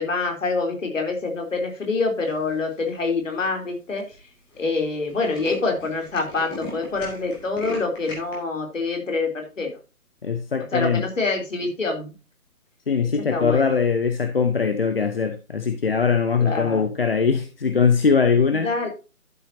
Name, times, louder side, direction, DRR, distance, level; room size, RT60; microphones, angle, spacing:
voice 1, 0.0-4.1 4.6-9.8 10.7-12.1 13.0-13.7 16.4-16.9 18.6-18.9, left 3 dB, 55° left, 3 dB, 3.3 m, -26 dB
Tools, 2.3-2.7 3.3-3.4 3.6-3.7 4.0-4.2 4.5-4.6 4.9-8.3, left 2 dB, 10° left, 1.7 m, -37 dB
voice 2, 10.2-11.0 12.9-18.7, left 5 dB, 40° left, 9 dB, 0.8 m, -21 dB
12.0 x 7.3 x 2.7 m, 0.31 s
figure-of-eight pair, 145°, 45 cm